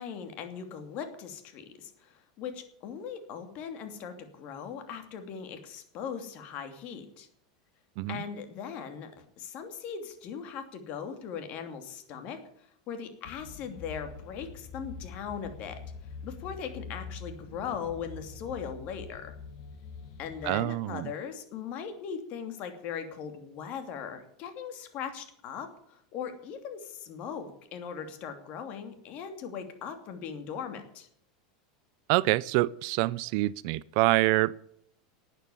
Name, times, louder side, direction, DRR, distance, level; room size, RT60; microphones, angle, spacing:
voice 1, 0.0-7.3 8.1-12.4 12.9-15.8 16.2-19.3 20.2-31.1, left 7 dB, 45° left, 7 dB, 2.8 m, -39 dB
sound 1, 13.2-20.6, left 5 dB, 60° left, 1.7 m, -45 dB
voice 2, 20.4-21.1 32.1-34.7, right 20 dB, 60° right, 20 dB, 0.5 m, -26 dB
12.5 x 9.2 x 9.8 m, 0.68 s
supercardioid pair, 135°, 3 cm